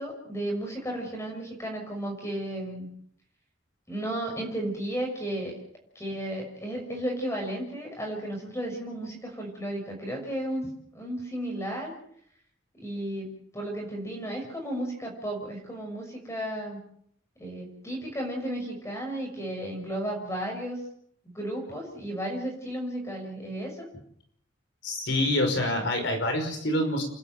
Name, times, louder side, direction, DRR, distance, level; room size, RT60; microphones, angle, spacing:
voice 1, 0.0-2.9 3.9-5.6 5.9-11.9 12.8-16.8 17.4-20.8 21.2-23.9, right 1 dB, 15° left, 1 dB, 6.7 m, -34 dB
voice 2, 24.8-27.0, left 1 dB, 65° left, 4 dB, 5.5 m, -26 dB
29.5 x 12.0 x 9.2 m, 0.67 s
head